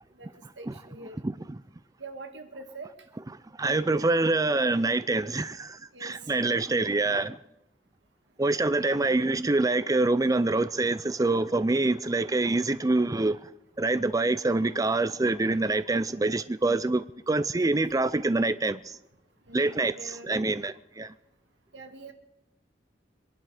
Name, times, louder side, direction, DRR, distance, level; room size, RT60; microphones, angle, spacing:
voice 1, 0.6-1.2 2.0-2.9 5.9-6.2 8.8-9.1 19.5-20.3 21.7-22.1, right 3 dB, 90° right, 2.0 m, -44 dB
voice 2, 3.6-7.4 8.4-13.4 13.8-18.8 19.5-21.1, right 2 dB, 20° right, 0.5 m, -25 dB
25.5 x 11.0 x 5.0 m
head